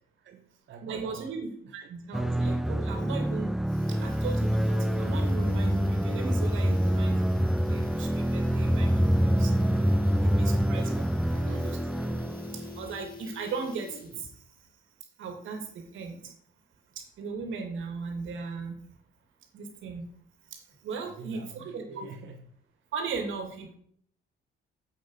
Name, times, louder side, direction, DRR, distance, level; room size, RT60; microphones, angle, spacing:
voice 1, 0.2-1.4 1.8-1.9 10.6-11.8 21.0-22.4, right 5 dB, 65° right, 1.1 m, -47 dB
voice 2, 0.8-3.5 3.9-7.3 7.6-9.6 10.0-10.9 11.6-11.8 12.3-14.4 15.2-16.3 17.0-18.8 19.5-20.1 20.5-22.1 22.9-23.8, right 4 dB, 80° right, 2.7 m, -37 dB
sound 1, 2.1-12.9, equal, ahead, 0.3 m, -26 dB
sound 2, 2.8-2.9 3.1-3.2 3.5-14.4 14.6-14.7, left 6 dB, 50° left, 2.1 m, -47 dB
7.9 x 7.8 x 6.7 m
cardioid pair, 90°, 20 cm